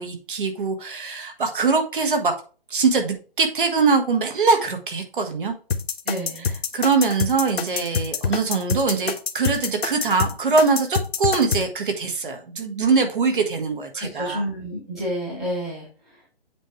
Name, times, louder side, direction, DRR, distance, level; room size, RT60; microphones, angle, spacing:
voice 1, 0.0-2.4 2.7-5.5 6.7-14.4, right 4 dB, 55° right, 6 dB, 1.5 m, -22 dB
sound 1, 5.7-11.6, left 6 dB, 75° left, 1.0 m, -25 dB
voice 2, 6.0-6.5 13.9-16.2, equal, ahead, -11 dB, 0.7 m, -30 dB
7.9 x 3.2 x 4.7 m, 0.37 s
hypercardioid pair, 175°, 31 cm